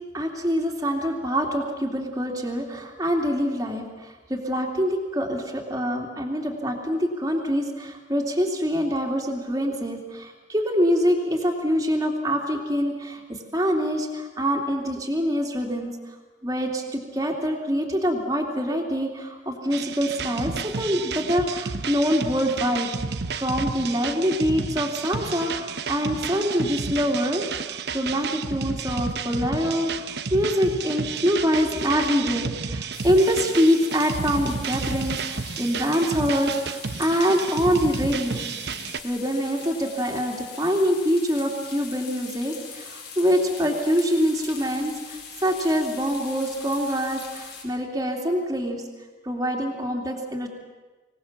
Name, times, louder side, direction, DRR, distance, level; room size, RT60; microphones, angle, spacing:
voice 1, 0.1-15.9 16.4-22.9 23.3-38.4 39.0-48.8 49.2-50.5, equal, 20° right, 0 dB, 2.9 m, -25 dB
sound 1, 19.7-39.0, right 5 dB, 60° right, 1.0 m, -31 dB
sound 2, 32.9-47.6, left 5 dB, 65° left, 5.8 m, -42 dB
25.5 x 18.5 x 7.4 m, 1.2 s
head